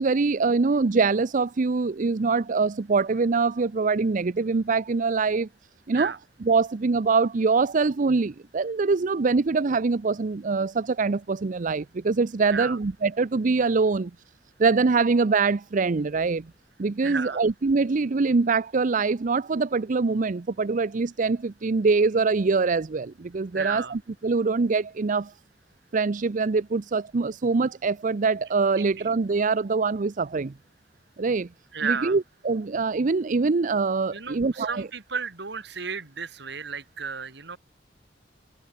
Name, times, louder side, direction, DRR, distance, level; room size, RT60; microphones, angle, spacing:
voice 1, 0.0-5.5 5.9-6.1 6.4-14.1 14.6-16.5 16.8-25.3 25.9-30.5 31.2-31.5 31.8-34.9, right 4 dB, 45° right, 0.5 m, -24 dB
voice 2, 17.0-17.4 23.5-23.9 31.7-32.1 34.1-37.6, right 5 dB, 65° right, 2.9 m, -32 dB
head